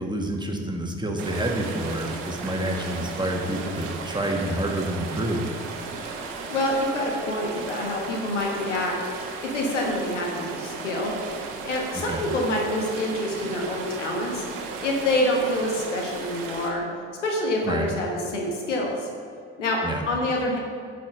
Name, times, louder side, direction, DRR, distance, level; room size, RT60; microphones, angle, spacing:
voice 1, 0.0-5.5 11.9-12.2 17.6-17.9 19.8-20.0, right 1 dB, 10° right, 1 dB, 1.7 m, -28 dB
sound 1, 1.2-16.7, right 4 dB, 75° right, 1.2 m, -35 dB
voice 2, 6.5-8.9 9.4-11.1 11.6-14.4 14.8-16.8 17.2-19.1 19.6-19.8 20.1-20.6, left 1 dB, 85° left, 0 dB, 1.4 m, -26 dB
10.5 x 5.0 x 6.4 m, 2.4 s
figure-of-eight pair, 45°, 35 cm